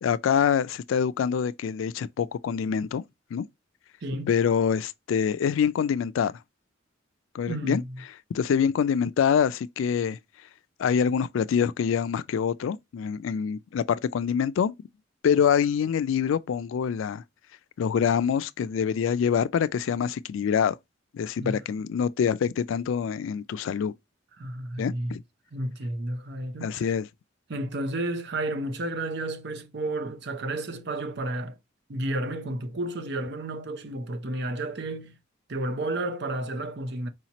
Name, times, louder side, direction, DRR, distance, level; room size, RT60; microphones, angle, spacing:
voice 1, 0.0-3.0 3.3-3.5 4.3-6.3 7.3-7.8 8.3-10.2 10.8-14.7 15.2-17.2 17.8-20.8 21.1-23.9 24.8-25.2 26.6-27.1, left 7 dB, 80° left, 0.3 m, -25 dB
voice 2, 4.0-4.3 7.5-8.0 21.4-21.6 24.4-25.2 25.5-26.9 27.5-31.6 31.9-35.1 35.5-37.1, right 1 dB, 60° right, 0.7 m, -31 dB
4.8 x 2.8 x 2.9 m
head